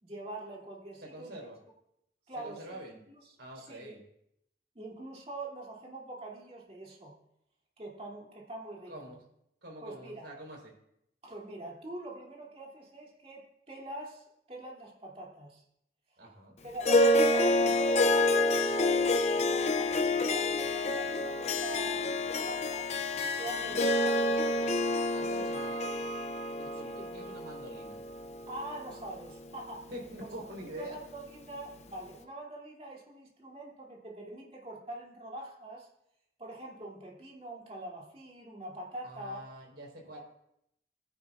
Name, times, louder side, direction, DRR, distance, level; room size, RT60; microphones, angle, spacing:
voice 1, 0.0-1.4 2.3-3.0 3.2-3.9 4.7-7.1 7.8-9.2 9.8-10.3 11.2-15.6 16.6-22.9 23.3-24.6 25.2-25.7 26.7-27.1 28.5-29.9 30.2-30.3 30.8-35.9 36.4-39.5 40.1-40.2, right 1 dB, 35° right, -3 dB, 2.9 m, -44 dB
voice 2, 1.0-1.6 2.4-3.0 3.4-4.0 8.9-9.2 9.6-10.7 16.2-16.6 25.1-25.8 26.6-28.0 29.9-31.0 39.0-40.2, right 1 dB, 90° right, -1 dB, 4.3 m, -45 dB
Harp, 16.8-29.4, left 2 dB, 40° left, 0.7 m, -28 dB
20.0 x 10.5 x 2.5 m, 0.78 s
head